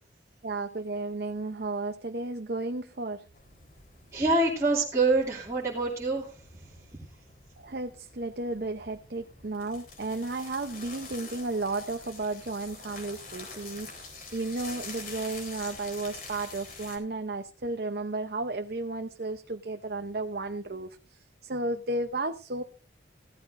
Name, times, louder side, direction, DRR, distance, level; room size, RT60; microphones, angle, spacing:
voice 1, 0.4-3.2 7.6-13.9 14.3-21.0 21.4-22.6, right 2 dB, 55° right, 6 dB, 0.7 m, -33 dB
sound 1, 3.3-17.0, left 4 dB, 50° left, 3.9 m, -46 dB
voice 2, 4.1-6.9, right 2 dB, 15° right, -6 dB, 2.5 m, -26 dB
16.0 x 13.0 x 2.6 m, 0.34 s
head